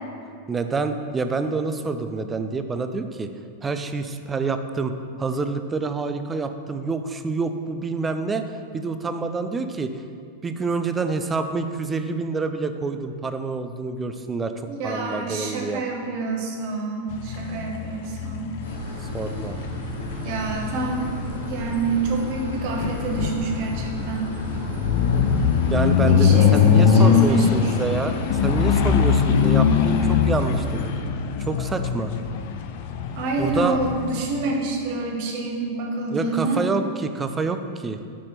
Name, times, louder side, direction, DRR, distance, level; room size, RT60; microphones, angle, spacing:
voice 1, 0.5-3.3 3.6-4.9 5.2-8.4 8.7-10.0 10.4-15.8 19.1-19.6 25.7-30.9 31.4-32.1 33.4-33.8 36.1-38.0, right 4 dB, 15° right, 8 dB, 0.5 m, -27 dB
voice 2, 14.7-18.5 20.2-24.3 26.0-27.7 33.2-36.6, right 3 dB, 45° right, 0 dB, 1.3 m, -28 dB
sound 1, 17.1-34.3, left 7 dB, 50° left, 0.5 m, -22 dB
sound 2, 18.6-30.8, equal, 75° left, 1.8 m, -34 dB
6.2 x 5.9 x 5.8 m, 2.3 s
figure-of-eight pair, 90°, 0 cm